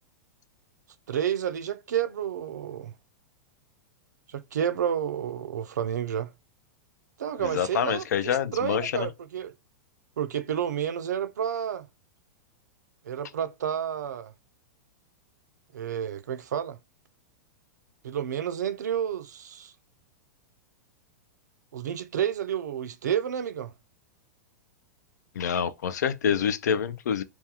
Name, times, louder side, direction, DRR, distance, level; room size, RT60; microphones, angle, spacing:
voice 1, 1.1-2.9 4.3-6.3 7.2-9.5 10.2-11.9 13.0-14.3 15.7-16.8 18.0-19.7 21.7-23.7, right 9 dB, 90° right, 0.4 m, -30 dB
voice 2, 7.4-9.1 25.4-27.2, left 8 dB, 85° left, 0.4 m, -27 dB
2.3 x 2.2 x 2.7 m
hypercardioid pair, 120°, 9 cm